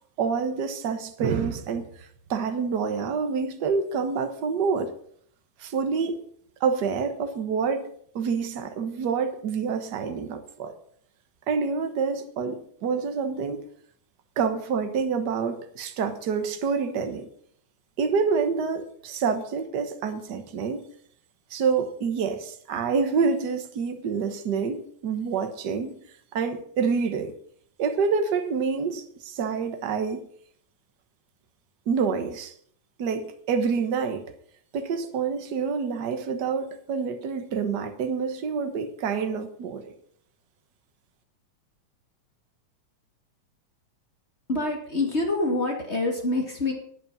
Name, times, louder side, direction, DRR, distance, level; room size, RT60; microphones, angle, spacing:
voice 1, 0.2-4.9 5.6-6.2 6.6-7.9 8.1-10.7 11.5-13.6 14.4-17.3 18.0-20.9 21.5-26.0 26.3-27.3 27.8-30.3 31.9-32.5 33.0-34.3 34.7-39.9, right 5 dB, 55° right, 1.1 m, -27 dB
voice 2, 44.5-46.7, left 2 dB, 25° left, 2.0 m, -26 dB
13.0 x 8.8 x 5.5 m
omnidirectional pair, 3.5 m